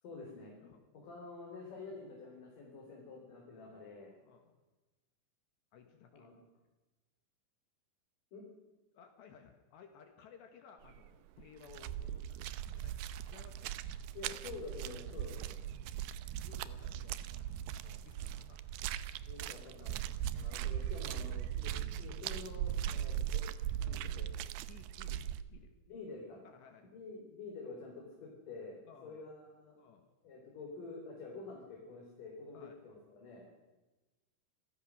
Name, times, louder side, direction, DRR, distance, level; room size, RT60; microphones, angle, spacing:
voice 1, 0.0-0.5 0.9-4.1 6.1-6.4 8.3-8.4 14.1-15.6 19.3-20.0 20.3-23.4 23.8-24.3 25.9-26.4 26.9-29.8 30.2-33.5, left 3 dB, 45° left, -2 dB, 5.2 m, -48 dB
voice 2, 3.6-3.9 4.2-4.6 5.7-6.3 9.0-12.5 12.7-13.8 15.4-15.5 16.2-19.0 20.1-20.2 22.9-23.2 24.7-25.8 26.4-26.9 28.9-29.3 29.7-30.1 32.5-32.8, left 7 dB, 65° left, 5 dB, 3.5 m, -59 dB
sound 1, 10.8-11.1 11.4-25.4, right 11 dB, 85° right, 2.3 m, -39 dB
27.0 x 17.0 x 6.4 m, 1.1 s
omnidirectional pair, 5.7 m